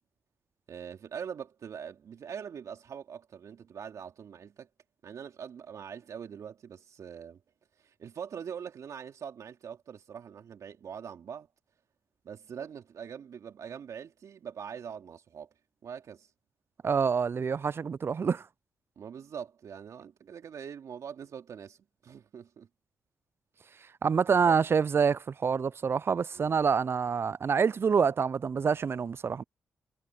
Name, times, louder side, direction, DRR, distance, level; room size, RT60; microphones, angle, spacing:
voice 1, 0.7-4.7 5.0-7.4 7.8-11.5 12.2-15.5 15.8-16.3 19.0-22.7 24.4-24.6 26.3-26.6, right 7 dB, 70° right, 2.9 m, -43 dB
voice 2, 16.8-18.4 24.0-29.4, right 6 dB, 45° right, 0.3 m, -26 dB
supercardioid pair, 50°, 6 cm